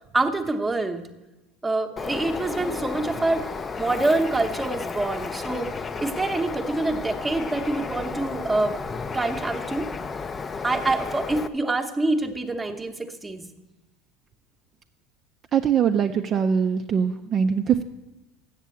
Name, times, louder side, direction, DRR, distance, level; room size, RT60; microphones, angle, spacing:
voice 1, 0.1-1.0 1.6-3.4 3.8-8.8 9.1-9.9 10.6-13.5, right 2 dB, 10° right, 5 dB, 0.9 m, -26 dB
Bird, 2.0-11.5, left 5 dB, 25° left, 0.5 m, -33 dB
voice 2, 15.5-17.8, right 7 dB, 35° right, 5 dB, 0.4 m, -22 dB
7.4 x 7.3 x 8.3 m, 1.1 s
supercardioid pair, 115°, 0 cm